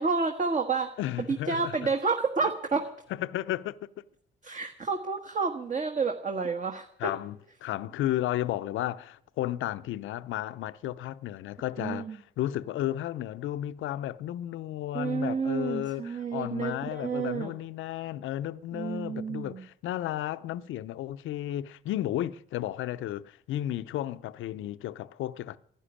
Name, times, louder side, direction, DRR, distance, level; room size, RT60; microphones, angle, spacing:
voice 1, 0.0-2.9 4.4-7.1 11.8-12.2 14.9-17.5 18.7-19.6, right 4 dB, 40° right, 1.4 m, -30 dB
voice 2, 1.0-1.8 3.1-3.9 7.0-25.6, left 13 dB, 80° left, 0.6 m, -33 dB
11.5 x 11.5 x 10.0 m
cardioid pair, 90°, 20 cm